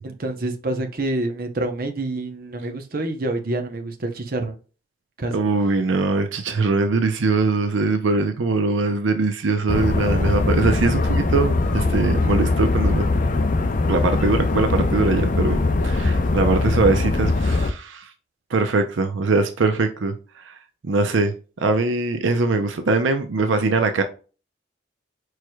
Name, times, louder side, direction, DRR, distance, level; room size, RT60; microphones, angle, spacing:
voice 1, 0.0-4.5 5.2-5.3, right 2 dB, 50° right, 0.8 m, -27 dB
voice 2, 5.3-13.0 13.9-18.1 18.5-20.6 20.8-24.0, right 3 dB, 80° right, 0.6 m, -22 dB
sound 1, 9.7-17.7, left 3 dB, 45° left, 0.5 m, -21 dB
4.7 x 4.6 x 2.3 m
head